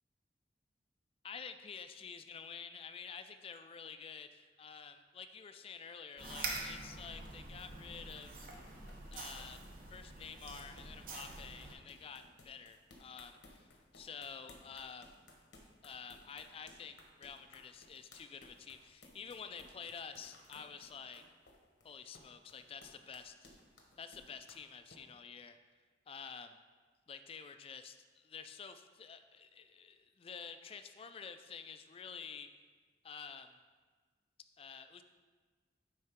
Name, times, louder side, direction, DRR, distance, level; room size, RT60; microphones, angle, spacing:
voice 1, 1.2-8.5 9.1-9.6 9.9-15.2 15.8-21.2 21.8-23.3 24.0-25.6 26.1-26.6 27.1-32.5 33.0-33.6 34.6-35.0, left 6 dB, 30° left, 9 dB, 0.3 m, -49 dB
sound 1, 6.0-25.0, left 2 dB, 90° left, 1.1 m, -61 dB
sound 2, 6.2-11.7, right 3 dB, 55° right, 0.9 m, -46 dB
9.7 x 3.8 x 3.6 m, 1.4 s
head